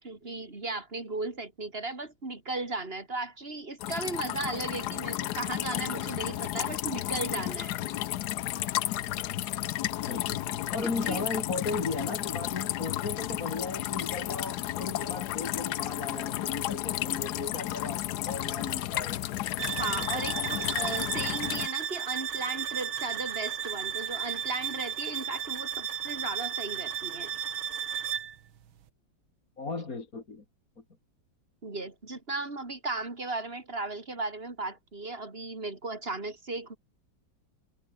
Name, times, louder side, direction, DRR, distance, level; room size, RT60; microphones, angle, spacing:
voice 1, 0.0-7.7 10.5-11.2 19.8-27.3 31.6-36.8, right 2 dB, 30° right, 3.7 m, -36 dB
sound 1, 3.8-21.7, left 14 dB, 65° left, 1.1 m, -32 dB
voice 2, 10.0-19.2 20.0-20.5 29.6-30.4, left 3 dB, 45° left, 3.3 m, -36 dB
sound 2, 19.6-28.4, right 9 dB, 85° right, 2.3 m, -34 dB
omnidirectional pair, 2.2 m